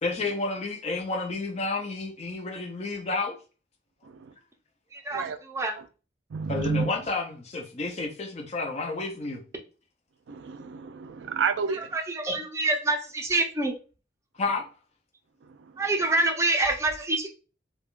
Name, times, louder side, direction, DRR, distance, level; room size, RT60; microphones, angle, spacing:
voice 1, 0.0-3.4 6.5-9.4 14.4-14.6, left 3 dB, 35° left, 0.5 m, -30 dB
voice 2, 4.0-4.3 5.1-5.4 5.8-5.9 6.3-6.9 10.3-12.0 15.4-15.7, right 5 dB, 85° right, 0.4 m, -31 dB
voice 3, 4.9-5.7 11.9-13.7 15.8-17.3, right 2 dB, 15° right, 0.5 m, -26 dB
3.4 x 2.2 x 2.4 m
head